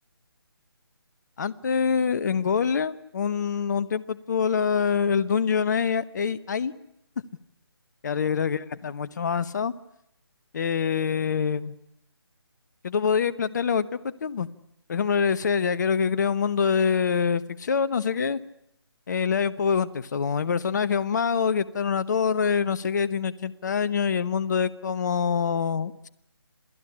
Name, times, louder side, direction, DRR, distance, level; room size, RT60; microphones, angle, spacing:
voice 1, 1.4-6.7 8.0-9.7 10.5-11.7 12.8-14.5 14.9-18.4 19.1-26.1, left 6 dB, 45° left, 15 dB, 1.2 m, -25 dB
28.0 x 17.0 x 9.9 m, 0.78 s
figure-of-eight pair, 150°, 13 cm